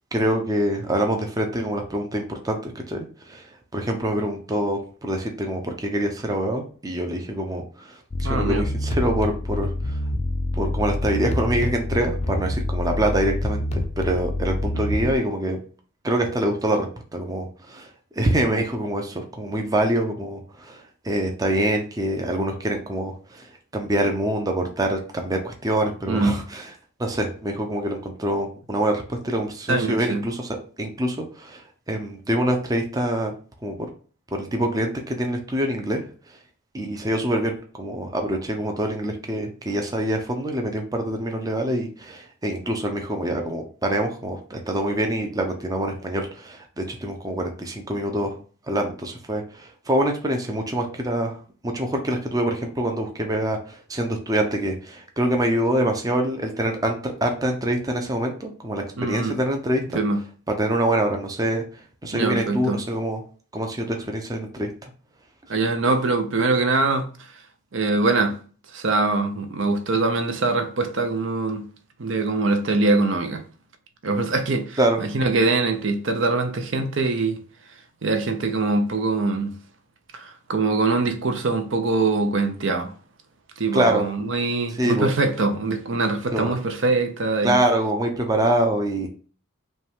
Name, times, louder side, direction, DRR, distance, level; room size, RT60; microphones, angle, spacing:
voice 1, 0.1-10.0 10.5-15.6 16.0-16.9 17.1-23.5 23.7-26.7 27.0-30.5 30.8-33.3 33.6-33.8 34.3-36.1 36.7-48.4 48.7-51.4 51.6-60.0 60.5-61.6 62.0-63.2 63.5-64.9 74.8-75.0 83.7-84.0 84.7-85.1 86.3-86.6 87.4-89.1, right 1 dB, 15° right, 0.5 m, -25 dB
sound 1, 8.1-15.2, left 1 dB, 30° left, 0.4 m, -26 dB
voice 2, 8.2-8.7 26.1-26.4 29.7-30.2 59.0-59.4 59.9-60.2 62.1-62.8 65.5-67.1 67.7-68.4 68.7-71.6 72.0-73.4 74.0-77.4 78.0-79.5 80.1-82.9 83.6-87.6, right 3 dB, 60° right, 0.6 m, -23 dB
5.2 x 2.3 x 3.5 m
head